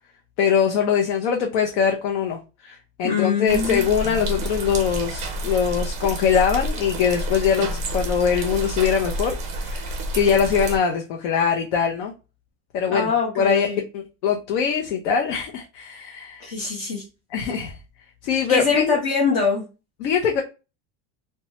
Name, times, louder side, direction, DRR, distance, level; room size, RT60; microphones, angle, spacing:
voice 1, 0.4-12.1 12.7-16.5 17.3-17.8 18.2-19.0 20.0-20.4, left 7 dB, 80° left, 0.6 m, -22 dB
voice 2, 3.0-3.8 12.9-13.8 16.4-17.0 18.5-19.6, left 5 dB, 50° left, 1.0 m, -23 dB
sound 1, 3.5-10.8, right 1 dB, 20° right, 0.4 m, -29 dB
3.0 x 2.2 x 2.8 m
cardioid pair, 170°, 34 cm